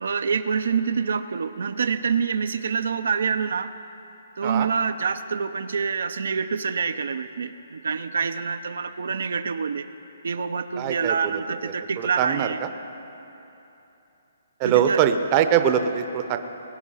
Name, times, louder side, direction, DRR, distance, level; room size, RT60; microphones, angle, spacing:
voice 1, 0.0-3.7 4.4-9.9 10.2-12.6 14.6-15.0, right 6 dB, 75° right, 10 dB, 0.5 m, -26 dB
voice 2, 10.8-12.5 14.6-16.4, right 9 dB, 25° right, 8 dB, 0.7 m, -23 dB
21.0 x 9.3 x 5.6 m, 3.0 s
hypercardioid pair, 165°, 0 cm